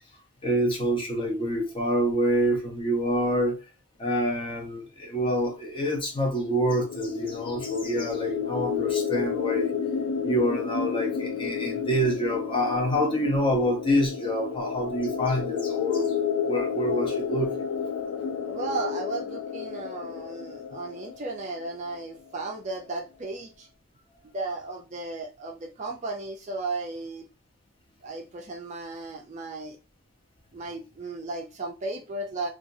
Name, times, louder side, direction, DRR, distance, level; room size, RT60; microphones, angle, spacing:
voice 1, 0.0-3.6 4.0-9.7 10.2-17.5, equal, 25° left, 0.7 m, -27 dB
sound 1, 6.4-22.0, left 7 dB, 70° left, 0.3 m, -31 dB
voice 2, 18.5-23.7 24.3-27.3 28.0-29.8 30.5-32.5, right 3 dB, 35° right, 0.4 m, -35 dB
2.8 x 2.4 x 2.6 m
head